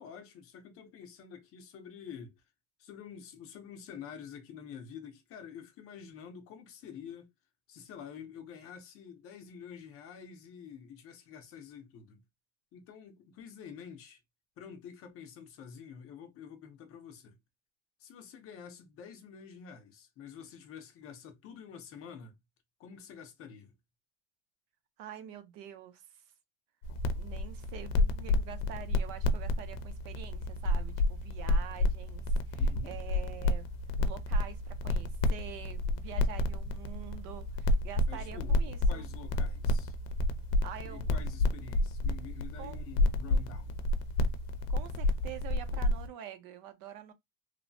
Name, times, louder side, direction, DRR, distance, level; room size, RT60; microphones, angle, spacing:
voice 1, 0.0-2.4 2.8-7.3 7.7-12.2 12.7-14.2 14.6-17.4 18.0-22.4 22.8-23.8 32.5-33.0 38.1-40.0 40.8-43.8, left 7 dB, 35° left, 0.6 m, -48 dB
voice 2, 25.0-26.0 27.2-33.7 34.0-39.1 40.6-41.1 42.6-42.8 44.7-47.1, right 10 dB, 60° right, 0.6 m, -46 dB
sound 1, 26.8-46.1, left 1 dB, 90° left, 0.6 m, -30 dB
3.1 x 2.0 x 2.5 m
cardioid pair, 180°, 39 cm